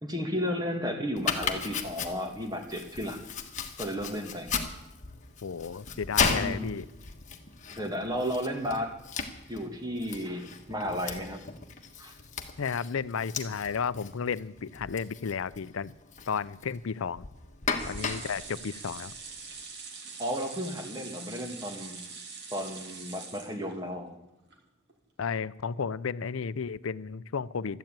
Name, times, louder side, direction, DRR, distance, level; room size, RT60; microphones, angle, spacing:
voice 1, 0.0-3.2 3.8-4.5 6.3-6.7 7.7-9.0 9.5-11.4 12.0-12.1 20.2-22.0 22.5-24.2, equal, 20° right, 4 dB, 1.8 m, -33 dB
Domestic sounds home sounds, 1.2-19.6, left 5 dB, 35° left, 1.4 m, -36 dB
voice 2, 5.4-6.9 12.6-15.9 16.3-17.3 17.9-19.1 25.2-27.8, left 6 dB, 80° left, 17 dB, 0.5 m, -33 dB
sound 1, 17.8-24.1 24.5-24.6 24.9-25.0, right 4 dB, 55° right, 2.5 m, -44 dB
13.0 x 10.5 x 8.9 m, 0.92 s
head